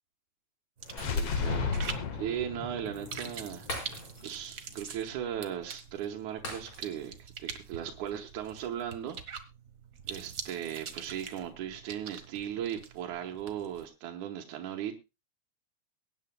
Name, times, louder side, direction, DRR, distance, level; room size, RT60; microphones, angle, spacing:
sound 1, 0.8-13.9, right 6 dB, 65° right, 0.8 m, -45 dB
sound 2, 0.9-4.8, left 5 dB, 55° left, 2.2 m, -34 dB
voice 1, 0.9-1.7 2.1-3.7 4.2-9.4 10.1-15.0, right 10 dB, 80° right, 2 dB, 2.6 m, -37 dB
Shatter, 1.0-1.7 2.0-2.2 3.7-4.5 4.8-4.9 6.4-7.2 7.5-7.7, left 1 dB, 25° left, 4.7 m, -42 dB
22.5 x 9.6 x 2.2 m, 0.25 s
omnidirectional pair, 3.4 m